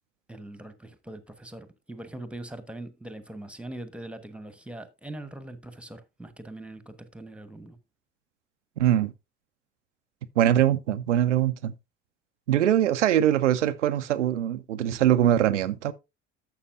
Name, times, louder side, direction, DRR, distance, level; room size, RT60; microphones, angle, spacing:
voice 1, 0.3-7.8, right 1 dB, 5° right, 1.2 m, -41 dB
voice 2, 8.8-9.1 10.4-11.7 12.5-15.9, right 11 dB, 85° right, 0.5 m, -22 dB
11.5 x 7.3 x 2.6 m
figure-of-eight pair, 60°, 35 cm